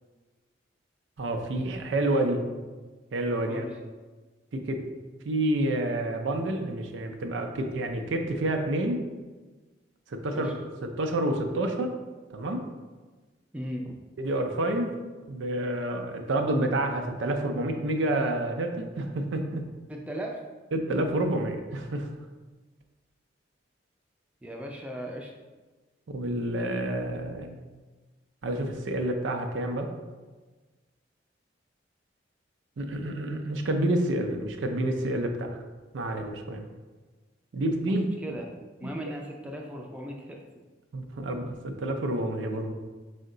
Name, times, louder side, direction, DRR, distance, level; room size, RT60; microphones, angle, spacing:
voice 1, 1.2-2.4 3.1-3.6 4.5-4.8 5.2-9.0 10.1-12.0 12.3-12.6 14.2-14.9 15.3-19.6 20.7-22.1 26.1-27.5 28.4-29.9 32.8-35.6 35.9-36.7 37.5-38.0 38.8-38.9 40.9-42.7, right 1 dB, 85° right, 4 dB, 0.5 m, -29 dB
voice 2, 13.5-14.0 19.9-20.4 24.4-25.3 37.9-38.4 38.8-40.4, equal, 5° right, -1 dB, 0.3 m, -37 dB
4.5 x 2.1 x 3.7 m, 1.3 s
head